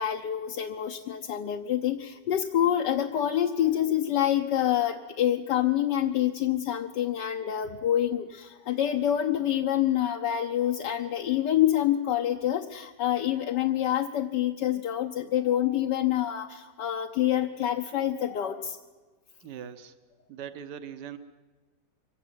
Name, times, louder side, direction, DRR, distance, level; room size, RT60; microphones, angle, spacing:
voice 1, 0.0-18.8, left 11 dB, 75° left, 4 dB, 1.5 m, -27 dB
voice 2, 19.4-19.9 20.3-21.2, right 8 dB, 75° right, 10 dB, 1.7 m, -40 dB
24.0 x 16.5 x 9.5 m, 1.3 s
omnidirectional pair, 1.9 m